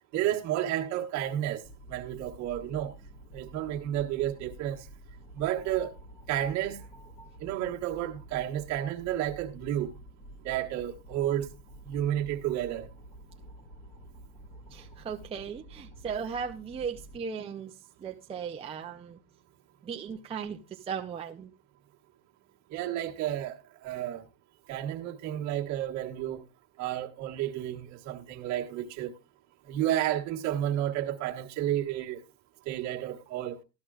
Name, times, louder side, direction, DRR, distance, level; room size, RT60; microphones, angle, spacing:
voice 1, 0.1-1.6 1.9-2.9 3.3-4.9 5.3-5.9 6.3-6.8 7.4-9.9 10.4-11.5 11.8-12.9 22.7-24.2 24.7-26.4 26.8-29.1 29.7-32.2 32.7-33.6, right 12 dB, 55° right, 1.4 m, -31 dB
sound 1, 1.6-17.2, right 1 dB, 30° left, 2.5 m, -50 dB
voice 2, 14.7-17.7 18.0-19.2 19.8-21.5, right 6 dB, 15° right, 0.5 m, -37 dB
12.5 x 12.5 x 2.3 m
cardioid pair, 160°, 34 cm